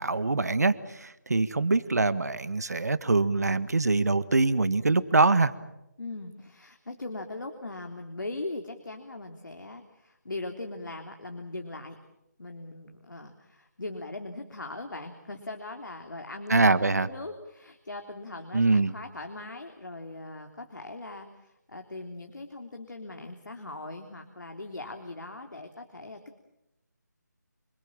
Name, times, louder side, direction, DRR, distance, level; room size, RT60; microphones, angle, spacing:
voice 1, 0.0-5.5 16.5-17.1 18.5-18.9, right 3 dB, 60° right, 14 dB, 1.6 m, -24 dB
voice 2, 6.0-12.0 12.4-26.4, left 2 dB, 90° left, 4 dB, 3.2 m, -40 dB
28.0 x 22.5 x 7.4 m, 0.88 s
figure-of-eight pair, 180°, 10 cm